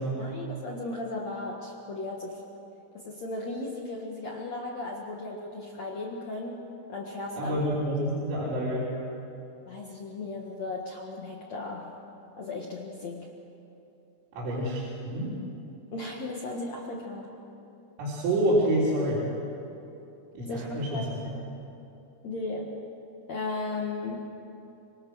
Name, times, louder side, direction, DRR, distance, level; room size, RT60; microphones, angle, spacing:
voice 1, 0.2-2.5 2.9-6.6 6.9-7.6 9.7-12.0 12.4-13.4 15.9-17.3 20.4-21.5 22.2-22.8 23.3-24.3, left 2 dB, 65° left, -1 dB, 1.7 m, -36 dB
voice 2, 7.4-8.9 14.3-15.3 18.0-19.3 20.3-21.0, right 1 dB, 90° right, -8 dB, 6.3 m, -27 dB
25.5 x 24.5 x 6.3 m, 2.8 s
omnidirectional pair, 5.7 m